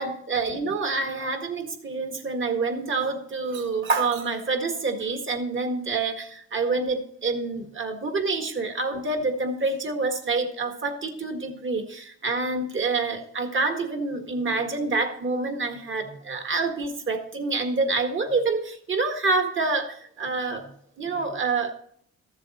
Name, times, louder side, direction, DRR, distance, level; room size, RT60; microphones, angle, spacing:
voice 1, 0.0-20.7 21.0-21.7, right 3 dB, 40° right, 6 dB, 1.7 m, -27 dB
13.5 x 7.4 x 4.2 m, 0.65 s
cardioid pair, 90°, 30 cm